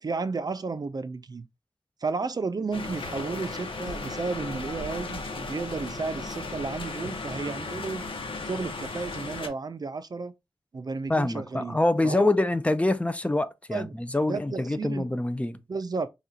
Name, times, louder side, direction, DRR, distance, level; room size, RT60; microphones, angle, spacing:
voice 1, 0.0-1.5 2.0-8.0 8.5-10.3 10.7-11.8 12.0-12.3 13.7-15.1 15.7-16.1, right 4 dB, 45° right, 0.4 m, -33 dB
sound 1, 2.7-9.5, left 3 dB, 75° left, 1.0 m, -36 dB
voice 2, 11.1-15.6, left 2 dB, 15° left, 0.5 m, -25 dB
4.8 x 2.4 x 2.8 m
wide cardioid pair, 90°, 9 cm